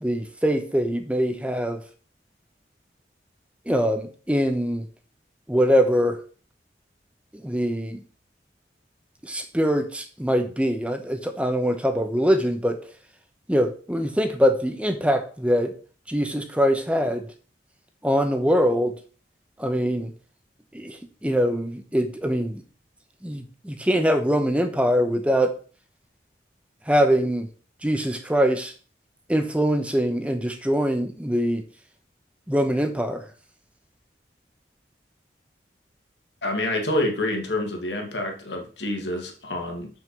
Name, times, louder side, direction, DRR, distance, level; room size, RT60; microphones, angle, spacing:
voice 1, 0.0-1.8 3.7-4.8 5.5-6.2 7.3-8.0 9.2-12.8 13.5-15.7 16.1-17.2 18.0-19.0 19.6-20.1 20.7-22.6 23.2-25.5 26.9-27.5 27.8-28.7 29.3-31.6 32.5-33.2, equal, 5° right, 7 dB, 0.8 m, -23 dB
voice 2, 36.4-39.9, left 1 dB, 85° left, 3 dB, 2.2 m, -27 dB
6.2 x 5.7 x 6.9 m, 0.40 s
head